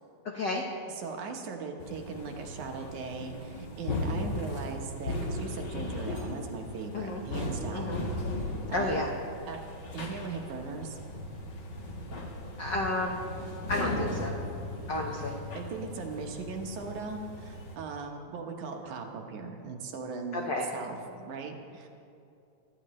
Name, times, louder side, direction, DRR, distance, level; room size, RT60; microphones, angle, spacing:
voice 1, 0.9-7.9 8.4-9.0 9.5-9.6 9.9-11.0 15.5-20.5 20.7-21.9, right 4 dB, 70° right, 3 dB, 2.5 m, -39 dB
sound 1, 1.8-17.8, left 1 dB, 50° left, 1.4 m, -37 dB
voice 2, 8.7-9.1 12.6-13.2 13.7-14.3 14.9-15.3 20.3-20.7, left 2 dB, 90° left, 0 dB, 0.9 m, -31 dB
24.0 x 13.0 x 3.2 m, 2.6 s
omnidirectional pair, 3.8 m